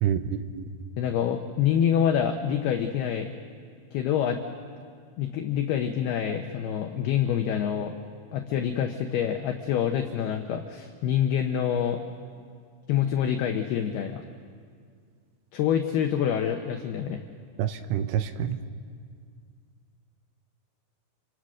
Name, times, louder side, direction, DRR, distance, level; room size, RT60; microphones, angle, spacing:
voice 1, 0.0-0.7 17.6-18.6, right 9 dB, 80° right, 10 dB, 3.3 m, -27 dB
voice 2, 1.0-3.3 3.9-4.4 5.2-7.9 8.3-12.0 12.9-14.2 15.5-17.2, left 9 dB, 85° left, 4 dB, 2.2 m, -26 dB
29.0 x 25.5 x 6.4 m, 2.1 s
omnidirectional pair, 6.0 m